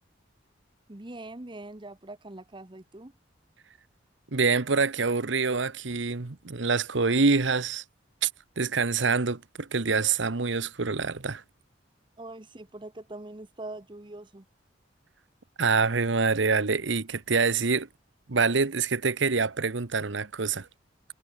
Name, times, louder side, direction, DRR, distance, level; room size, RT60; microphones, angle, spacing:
voice 1, 0.9-3.1 12.2-14.5, right 2 dB, 25° right, 1.0 m, -42 dB
voice 2, 4.3-7.8 8.2-8.3 8.6-11.4 15.6-17.9 18.3-20.7, right 4 dB, 70° right, 1.1 m, -26 dB
head